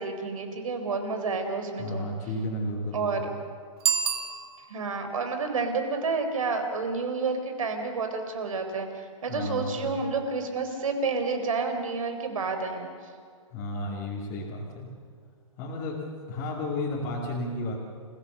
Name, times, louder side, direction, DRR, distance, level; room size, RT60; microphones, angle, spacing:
voice 1, 0.0-2.1 2.9-3.2 4.7-12.9, right 4 dB, 70° right, 6 dB, 4.4 m, -30 dB
voice 2, 1.8-3.3 9.3-10.0 13.5-14.9 15.6-16.0 16.3-17.8, left 1 dB, 20° left, -5 dB, 2.8 m, -33 dB
Bicycle bell, 3.8-5.0, right 8 dB, 45° right, 2.1 m, -29 dB
28.5 x 17.0 x 6.8 m, 2.1 s
hypercardioid pair, 170°, 18 cm